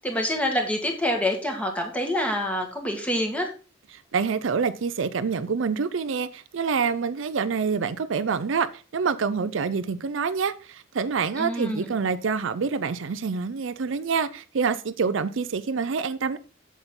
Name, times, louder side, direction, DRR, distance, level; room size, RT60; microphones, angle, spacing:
voice 1, 0.0-3.5 11.4-11.9, left 1 dB, 5° left, 1.7 m, -26 dB
voice 2, 3.9-16.4, right 5 dB, 70° right, 0.5 m, -27 dB
8.0 x 7.3 x 3.7 m
head